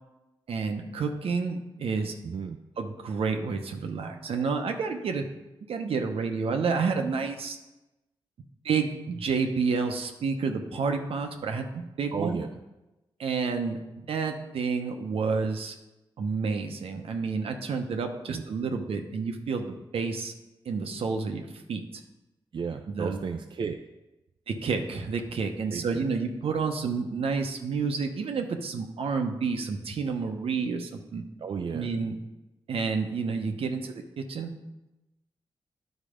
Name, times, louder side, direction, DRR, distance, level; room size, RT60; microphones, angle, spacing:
voice 1, 0.5-2.1 2.8-5.3 5.7-7.6 8.6-12.4 13.2-15.7 16.2-20.3 20.6-21.8 22.9-23.2 24.5-31.2 31.7-32.2 32.7-34.5, right 5 dB, 75° right, 5 dB, 0.9 m, -30 dB
voice 2, 2.2-2.6 12.1-12.5 18.3-18.4 22.5-23.8 25.7-26.1 31.4-31.9, right 6 dB, 55° right, 4 dB, 0.5 m, -33 dB
10.5 x 4.1 x 5.1 m, 1.0 s
cardioid pair, 65°, 10 cm